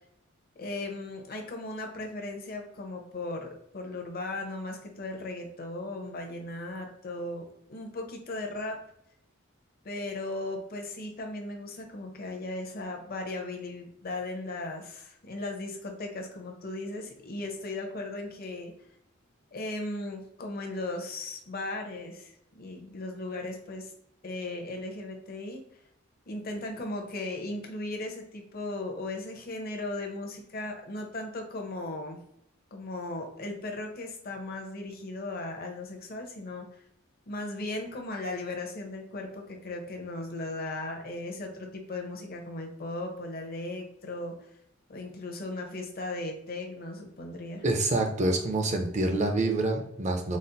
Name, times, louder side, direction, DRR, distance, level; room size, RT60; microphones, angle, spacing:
voice 1, 0.6-7.4 7.7-8.8 9.8-18.7 19.5-23.9 24.2-25.6 26.3-32.2 32.7-36.8 37.3-44.3 44.9-47.6, left 2 dB, 50° left, 3 dB, 0.7 m, -37 dB
voice 2, 47.6-50.4, right 2 dB, 35° right, 4 dB, 0.6 m, -27 dB
4.1 x 2.0 x 3.8 m, 0.73 s
head